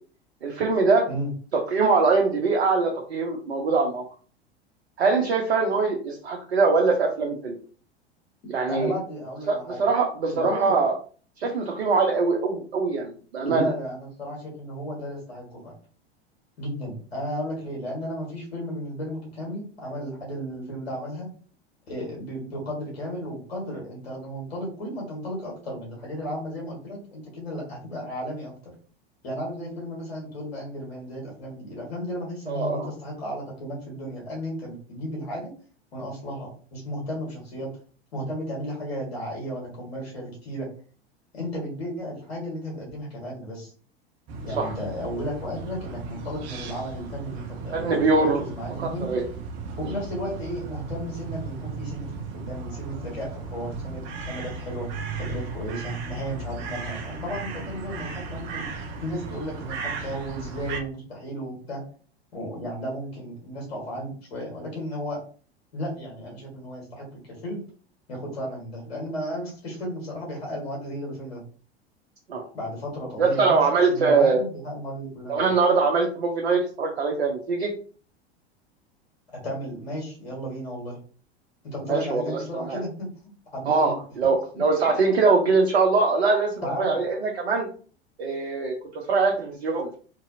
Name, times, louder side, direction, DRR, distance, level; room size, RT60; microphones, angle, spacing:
voice 1, 0.4-1.1 1.7-4.0 5.0-7.6 8.5-8.9 9.5-10.9 11.4-13.7 32.5-32.9 44.6-44.7 47.7-48.4 48.8-49.2 49.8-49.9 72.3-72.4 73.2-74.4 75.3-77.7 81.8-82.8 83.7-87.7 88.2-90.0, right 4 dB, 70° right, 0 dB, 0.7 m, -23 dB
voice 2, 8.7-9.8 10.3-10.7 13.4-15.7 16.6-21.3 21.9-28.5 29.2-35.5 35.9-37.7 38.1-40.7 41.3-43.7 44.4-49.1 49.8-52.1 52.3-54.9 55.2-58.7 59.0-61.8 62.3-65.2 65.7-67.1 67.4-67.6 68.1-71.4 72.5-73.6 73.9-75.5 79.3-81.0 81.6-84.0 84.5-84.6 86.6-87.0, equal, 70° left, -2 dB, 1.5 m, -34 dB
sound 1, 44.3-60.8, right 4 dB, 35° right, 0.7 m, -36 dB
2.9 x 2.7 x 2.6 m, 0.41 s
figure-of-eight pair, 90°, 32 cm